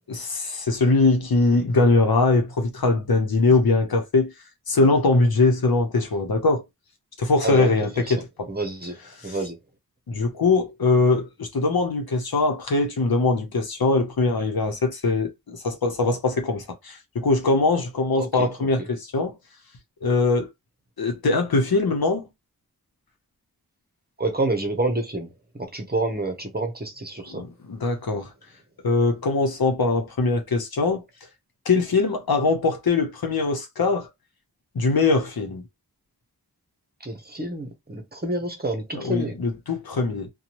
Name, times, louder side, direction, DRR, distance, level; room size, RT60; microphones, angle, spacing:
voice 1, 0.1-4.3 4.7-6.6 7.2-8.5 9.2-9.4 10.1-19.3 20.0-20.5 21.0-22.3 27.3-28.3 28.8-31.0 31.7-34.1 34.7-35.6 38.9-40.3, left 3 dB, 75° left, 0.9 m, -22 dB
voice 2, 7.4-7.7 8.1-8.2 8.5-9.0 9.2-9.6 18.2-18.7 24.2-25.3 25.6-27.4 37.0-39.4, right 2 dB, 25° right, 0.8 m, -28 dB
2.6 x 2.2 x 3.0 m
wide cardioid pair, 60°, 36 cm